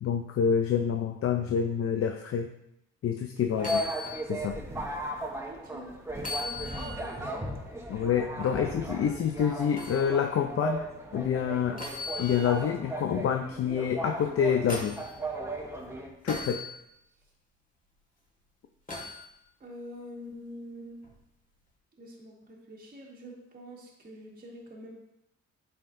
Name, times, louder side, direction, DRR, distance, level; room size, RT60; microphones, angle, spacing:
voice 1, 0.0-2.5 3.0-3.8 4.3-4.6 7.9-10.8 11.1-11.8 12.2-15.0 16.2-16.6, left 7 dB, 50° left, 5 dB, 0.5 m, -27 dB
sound 1, 3.5-4.2 4.7-4.8 6.2-7.2 9.8-10.0 11.8-12.7 14.2-15.1 16.3-16.7 18.9-19.2 21.0-21.2, left 3 dB, 25° left, 1.8 m, -38 dB
sound 2, 3.6-16.1, right 1 dB, 10° right, 1.0 m, -36 dB
voice 2, 5.4-5.9 6.2-7.5 8.4-8.7 19.6-21.0 22.0-24.9, equal, 30° right, -3 dB, 1.6 m, -45 dB
8.5 x 5.7 x 2.6 m, 0.82 s
cardioid pair, 90°, 30 cm